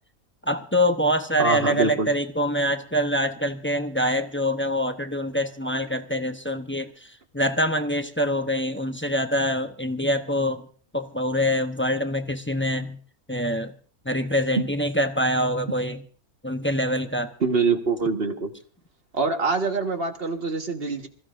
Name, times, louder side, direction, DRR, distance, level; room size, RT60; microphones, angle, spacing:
voice 1, 0.4-10.7 10.9-13.0 13.3-13.7 14.0-16.0 16.4-17.3, equal, 10° left, 7 dB, 0.5 m, -25 dB
voice 2, 1.4-2.1 17.4-18.5 19.1-21.1, right 4 dB, 40° right, 5 dB, 1.6 m, -24 dB
26.5 x 15.0 x 2.6 m, 0.41 s
omnidirectional pair, 1.6 m